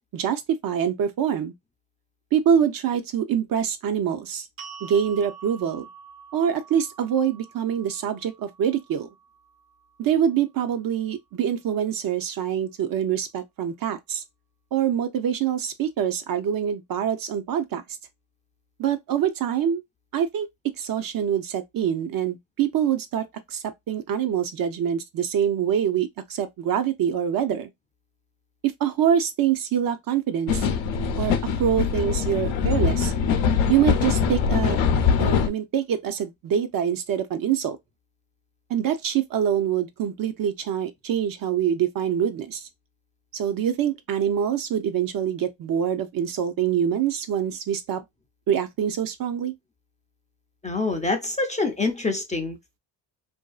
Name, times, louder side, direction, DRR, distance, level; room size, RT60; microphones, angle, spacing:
voice 1, 0.1-1.5 2.3-4.5 4.8-5.8 6.3-9.1 10.0-14.2 14.7-17.8 18.8-19.8 20.1-20.5 20.8-27.7 28.8-30.7 31.2-31.3 31.6-33.1 33.7-34.8 35.2-37.8 38.7-42.6 43.3-48.0 48.5-49.5, right 9 dB, 50° right, 0.5 m, -25 dB
sound 1, 4.6-10.8, right 6 dB, 80° right, 0.9 m, -47 dB
sound 2, 30.5-35.5, left 6 dB, 80° left, 0.7 m, -22 dB
voice 2, 50.6-52.8, left 3 dB, 15° left, 0.4 m, -26 dB
2.6 x 2.3 x 2.3 m
cardioid pair, 90°, 45 cm